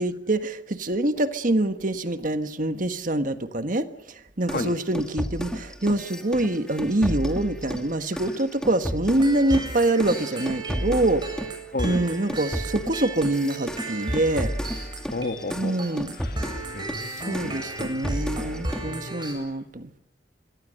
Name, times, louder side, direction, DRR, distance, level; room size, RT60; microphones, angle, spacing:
voice 1, 0.0-3.9 4.4-11.2 11.8-14.5 15.5-16.2 17.3-19.9, right 1 dB, 45° right, 10 dB, 1.5 m, -25 dB
sound 1, 4.5-11.6 11.8-18.9, equal, 5° left, 2.2 m, -33 dB
sound 2, 9.2-19.3, right 2 dB, 25° right, 7.7 m, -35 dB
voice 2, 15.1-15.8 16.1-17.6 18.8-19.5, left 2 dB, 50° left, 7 dB, 2.2 m, -33 dB
26.5 x 22.5 x 6.6 m, 0.79 s
head